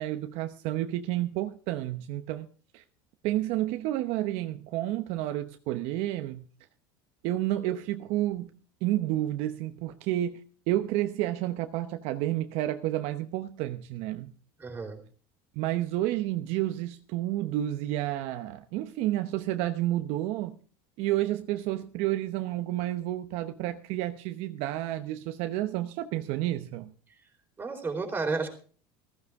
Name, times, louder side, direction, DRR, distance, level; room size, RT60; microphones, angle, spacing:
voice 1, 0.0-2.5 2.7-2.8 3.2-6.5 7.2-8.5 8.8-10.4 10.7-14.3 15.6-20.6 21.0-26.9, right 14 dB, 60° right, 0.9 m, -30 dB
voice 2, 14.6-15.0 27.6-28.5, right 4 dB, 15° right, 4.1 m, -31 dB
15.0 x 15.0 x 3.6 m
supercardioid pair, 130°, 12 cm